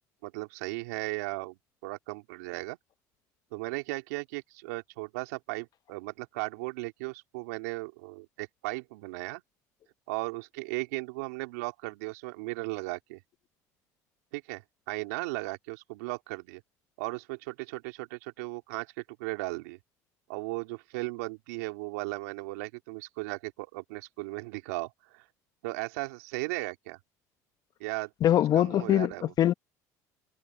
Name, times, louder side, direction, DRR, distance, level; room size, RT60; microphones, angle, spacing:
voice 1, 0.2-2.8 3.5-9.4 10.1-13.2 14.3-14.6 14.9-16.6 17.0-19.8 20.3-25.2 25.6-27.0 27.8-28.1 28.5-29.3, right 24 dB, 80° right, 2.9 m, -36 dB
voice 2, 28.2-29.5, left 11 dB, 50° left, 0.9 m, -23 dB
hypercardioid pair, 80°, 8 cm